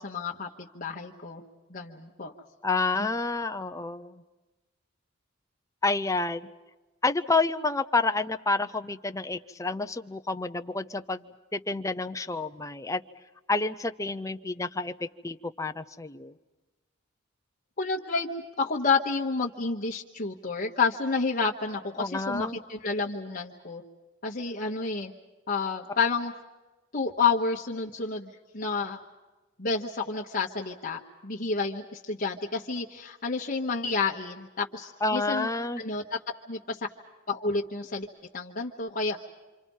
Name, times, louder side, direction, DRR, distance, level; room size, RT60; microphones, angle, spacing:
voice 1, 0.0-1.4 1.7-2.3 17.8-18.3 18.6-23.8 24.2-25.1 25.5-26.3 26.9-29.0 29.6-35.5 35.8-36.0 36.5-36.8 37.3-38.1 38.3-39.2, left 4 dB, 45° left, -1 dB, 1.2 m, -30 dB
voice 2, 2.6-4.1 5.8-6.4 7.0-11.2 11.5-13.0 13.5-16.3 22.0-22.6 35.0-35.8, left 3 dB, 15° left, 8 dB, 0.7 m, -29 dB
27.5 x 26.5 x 5.5 m, 1.2 s
head